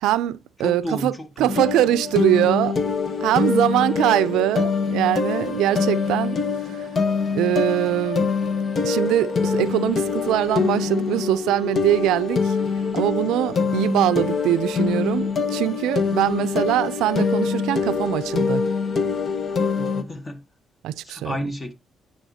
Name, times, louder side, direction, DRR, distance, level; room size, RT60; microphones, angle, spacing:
voice 1, 0.0-2.8 3.2-6.4 6.7-6.9 7.3-8.3 8.8-12.5 12.9-18.6 20.8-21.4, right 14 dB, 90° right, 0.5 m, -22 dB
voice 2, 0.6-1.6 13.6-13.7 16.3-16.5 19.8-20.4 21.0-21.7, left 1 dB, 25° left, 1.8 m, -32 dB
sound 1, 1.5-20.0, left 5 dB, 45° left, 1.3 m, -24 dB
10.0 x 8.5 x 2.8 m
cardioid pair, 90°, 0 cm